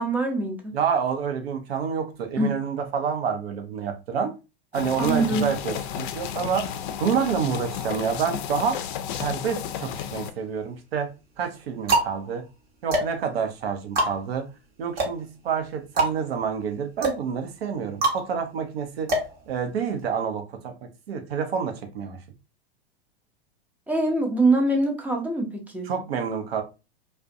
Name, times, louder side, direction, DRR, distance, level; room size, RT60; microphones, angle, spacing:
voice 1, 0.0-0.8 2.4-2.6 5.0-5.5 23.9-25.9, right 2 dB, 5° right, 0.5 m, -24 dB
voice 2, 0.7-4.4 4.7-8.8 9.2-11.1 11.4-12.4 12.8-14.5 14.8-19.1 19.5-22.2 25.8-26.6, right 7 dB, 75° right, 0.7 m, -28 dB
sound 1, 4.7-10.3, left 9 dB, 55° left, 0.4 m, -33 dB
sound 2, 9.9-10.6 11.3-20.1, right 2 dB, 30° right, 0.9 m, -28 dB
2.4 x 2.2 x 2.5 m
hypercardioid pair, 110°, 31 cm